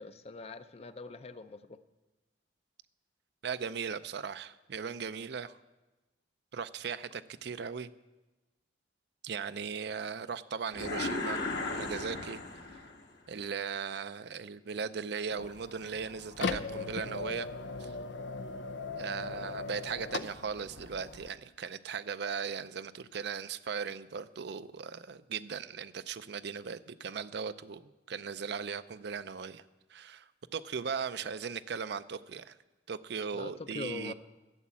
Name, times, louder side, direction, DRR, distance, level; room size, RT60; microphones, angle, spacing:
voice 1, 0.0-1.8 19.3-19.5 31.2-31.3 33.3-34.1, left 3 dB, 35° left, 11 dB, 0.5 m, -43 dB
voice 2, 3.4-5.6 6.5-7.9 9.2-11.4 11.7-12.4 13.3-17.5 17.8-17.9 19.0-29.6 29.9-32.5 32.9-34.1, right 6 dB, 65° right, 13 dB, 0.5 m, -38 dB
sound 1, 10.7-13.1, left 3 dB, 70° left, 1.6 m, -36 dB
sound 2, 15.3-21.3, left 4 dB, 85° left, 0.6 m, -39 dB
12.5 x 7.2 x 8.6 m, 1.1 s
head